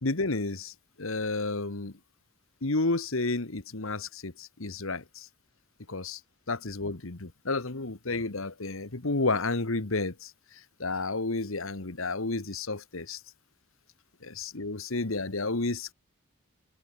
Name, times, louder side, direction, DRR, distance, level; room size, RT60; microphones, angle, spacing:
voice 1, 0.0-1.9 2.6-5.3 5.9-6.2 6.5-10.3 10.8-13.2 14.2-15.9, left 3 dB, 70° left, 1.6 m, -31 dB
head